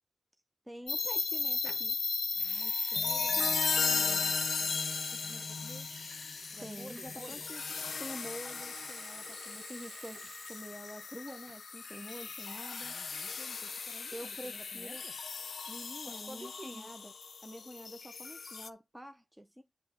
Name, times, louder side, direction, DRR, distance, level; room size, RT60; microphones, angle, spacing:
voice 1, 0.7-2.0 3.9-4.4 6.6-7.6 8.0-12.9 14.1-15.0 15.7-17.1 17.4-19.6, equal, 5° right, 0.8 m, -47 dB
sound 1, 0.9-18.7, left 5 dB, 75° left, 0.4 m, -36 dB
Water tap faucet / Sink (filling or washing) / Liquid, 1.7-1.9 2.3-11.1 11.4-11.7, right 5 dB, 80° right, 0.5 m, -52 dB
voice 2, 2.3-4.0 4.6-4.8 5.1-5.9 6.5-7.4 12.8-15.1 16.0-16.9, right 1 dB, 30° right, 1.1 m, -51 dB
8.4 x 3.0 x 5.8 m
wide cardioid pair, 75°, 0 cm